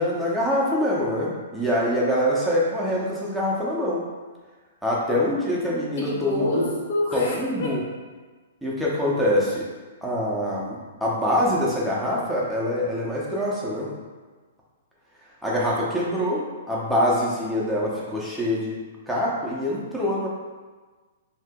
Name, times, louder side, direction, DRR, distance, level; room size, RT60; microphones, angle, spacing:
voice 1, 0.0-4.0 4.8-6.6 7.1-7.8 8.6-9.6 10.0-13.9 15.4-18.8 19.1-20.3, left 1 dB, ahead, -7 dB, 0.8 m, -24 dB
voice 2, 6.0-7.8, left 1 dB, 65° left, -4 dB, 0.9 m, -27 dB
2.8 x 2.5 x 3.6 m, 1.4 s
hypercardioid pair, 130°, 0 cm